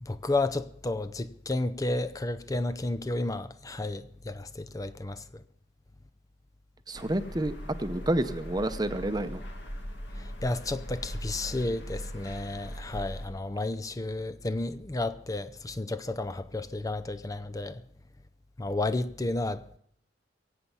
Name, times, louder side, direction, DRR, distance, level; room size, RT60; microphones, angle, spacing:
voice 1, 0.0-5.4 10.2-17.8 18.6-19.7, left 2 dB, 20° left, 0.5 m, -32 dB
voice 2, 6.9-9.4, right 1 dB, 20° right, 0.8 m, -29 dB
sound 1, 7.0-13.3, equal, 80° left, 2.2 m, -40 dB
23.0 x 8.5 x 5.5 m
head